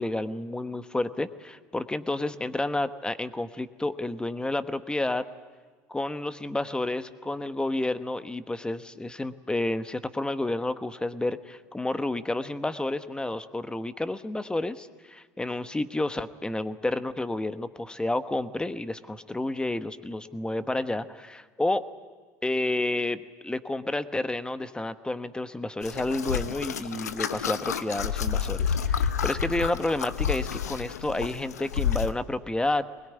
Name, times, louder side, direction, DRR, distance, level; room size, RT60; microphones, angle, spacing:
voice 1, 0.0-5.2 5.9-21.8 22.4-32.8, left 2 dB, 10° left, 12 dB, 1.1 m, -30 dB
sound 1, 25.8-32.1, left 8 dB, 85° left, 0.9 m, -29 dB
21.5 x 21.0 x 9.5 m, 1.4 s
hypercardioid pair, 70°, 8 cm